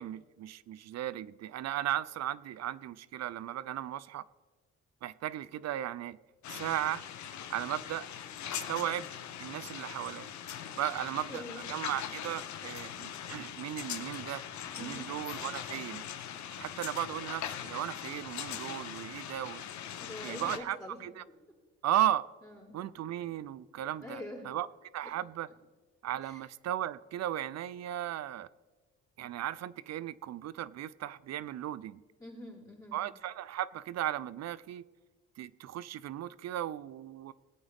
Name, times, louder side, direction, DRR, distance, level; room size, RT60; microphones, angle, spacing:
voice 1, 0.0-4.2 5.0-6.2 6.5-7.0 7.5-8.1 8.4-9.1 9.4-10.3 10.7-14.4 14.8-16.1 16.6-19.6 20.2-21.2 21.8-22.3 22.7-24.7 24.9-25.5 26.0-28.5 29.2-32.0 32.9-34.8 35.4-37.3, right 12 dB, 60° right, 19 dB, 0.5 m, -36 dB
sound 1, 6.4-20.6, left 9 dB, 70° left, 1.0 m, -41 dB
voice 2, 11.3-11.6 14.8-15.1 20.0-21.0 22.4-22.8 24.0-24.4 26.2-26.4 32.2-33.0, left 1 dB, 10° left, -7 dB, 4.3 m, -45 dB
20.0 x 8.6 x 3.6 m, 1.3 s
cardioid pair, 90°, 30 cm